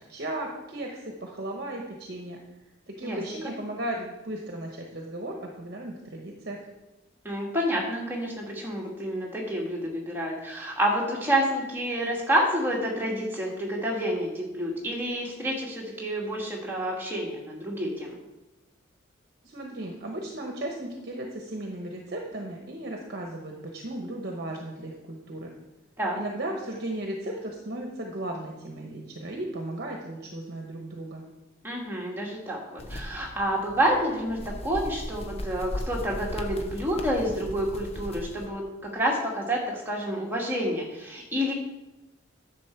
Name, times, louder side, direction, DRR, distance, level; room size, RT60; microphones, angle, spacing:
voice 1, 0.1-2.4 2.9-6.6 19.4-25.5 26.1-31.2, right 1 dB, 50° right, 1 dB, 1.1 m, -36 dB
voice 2, 7.2-18.2 26.0-26.2 31.6-41.5, equal, 10° right, -2 dB, 1.9 m, -29 dB
sound 1, 32.8-38.5, left 1 dB, 30° left, 0.7 m, -37 dB
10.0 x 7.1 x 4.5 m, 1.0 s
head